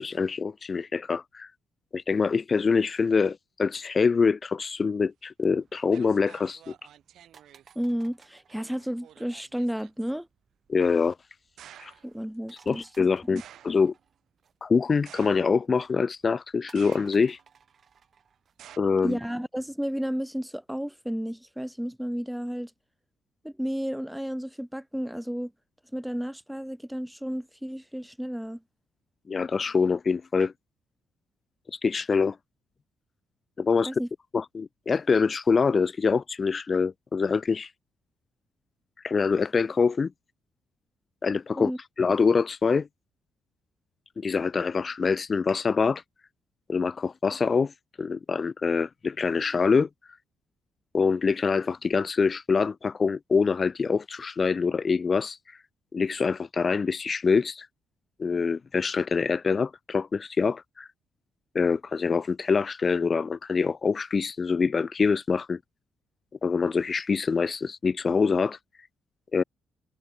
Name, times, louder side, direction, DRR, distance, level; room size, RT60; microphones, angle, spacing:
voice 1, 0.0-1.5 1.9-6.7 10.7-11.2 11.8-11.9 12.7-13.9 14.6-17.4 18.8-19.2 29.3-30.5 31.7-32.4 33.6-33.9 34.3-37.7 39.0-40.1 41.2-41.7 42.0-42.9 44.2-46.0 46.7-47.7 48.0-49.9 50.9-55.6 55.9-57.7 58.2-60.9 61.5-65.6 66.4-68.6 69.3-69.4, left 5 dB, 35° left, 0.4 m, -25 dB
sound 1, 5.4-5.5 5.9-7.8 8.5-10.1 11.6-12.1 13.4-13.9 15.1-15.8 16.7-17.4 18.6-18.8, right 11 dB, 70° right, 3.3 m, -51 dB
sound 2, 5.5-19.2, right 6 dB, 50° right, 4.1 m, -62 dB
voice 2, 7.8-10.3 12.0-12.9 13.3-13.4 19.0-22.7 23.4-25.5 25.9-28.6 33.9-34.1 41.6-41.8, equal, ahead, 0.7 m, -32 dB
cardioid pair, 90°, 0 cm